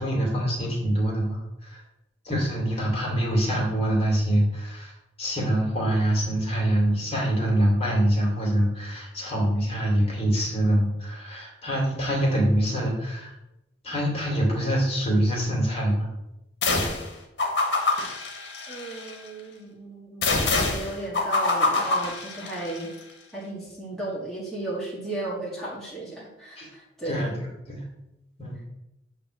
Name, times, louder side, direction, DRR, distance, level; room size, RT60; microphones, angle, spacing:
voice 1, 0.0-1.8 2.2-4.9 5.2-13.3 13.8-16.1 26.6-26.7 27.0-27.8 28.4-28.6, right 1 dB, 35° left, -3 dB, 2.7 m, -25 dB
sound 1, 16.6-17.1 17.4-19.1 20.2-22.8, left 3 dB, 70° left, 1.6 m, -25 dB
voice 2, 18.7-22.9 23.3-27.4, right 2 dB, ahead, -8 dB, 1.9 m, -35 dB
8.8 x 3.3 x 6.7 m, 0.88 s
head